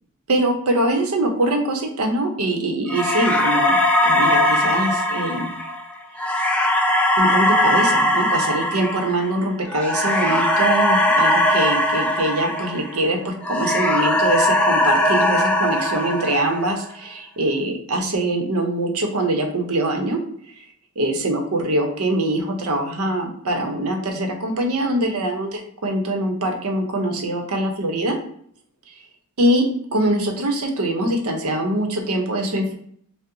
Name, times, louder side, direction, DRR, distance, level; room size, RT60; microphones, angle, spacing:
voice 1, 0.3-3.8 4.0-5.5 7.2-20.2 21.0-28.2 29.4-29.7 29.9-32.7, right 1 dB, 85° right, 3 dB, 0.7 m, -23 dB
sound 1, 2.9-13.1 13.4-16.8, left 1 dB, 5° left, 0.3 m, -20 dB
5.4 x 2.0 x 2.6 m, 0.63 s
head